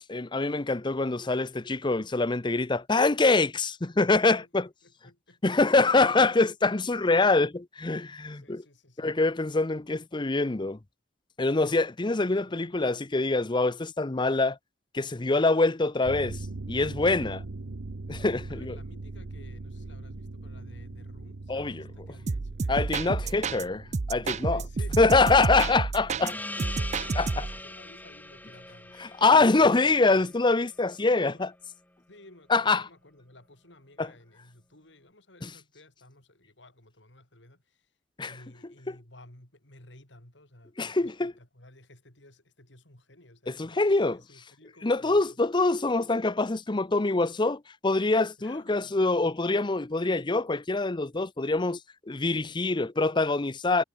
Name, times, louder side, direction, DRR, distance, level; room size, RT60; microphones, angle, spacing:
voice 1, 0.1-4.7 5.4-8.6 9.0-10.8 11.4-14.6 14.9-16.4 16.7-17.4 18.1-18.7 21.5-21.8 22.7-23.8 24.1-24.6 25.0-26.3 27.2-27.3 29.0-31.5 32.5-32.8 34.0-34.1 38.2-38.3 40.8-41.3 43.5-44.2 44.8-51.8 52.1-53.8, left 3 dB, 25° left, 0.7 m, -24 dB
voice 2, 4.2-4.5 4.8-5.4 7.0-7.3 8.3-9.2 12.1-12.6 18.5-23.8 24.4-29.0 29.4-30.3 31.1-31.5 32.1-38.0 38.2-45.4 48.4-49.3, left 1 dB, 70° left, 5.4 m, -54 dB
sound 1, 16.0-28.1 28.5-28.6, right 2 dB, 85° right, 0.9 m, -42 dB
sound 2, 22.3-23.6 23.9-26.3 26.6-27.6, right 4 dB, 40° right, 0.5 m, -30 dB
Gong, 26.2-31.3, left 2 dB, 10° left, 4.5 m, -41 dB
head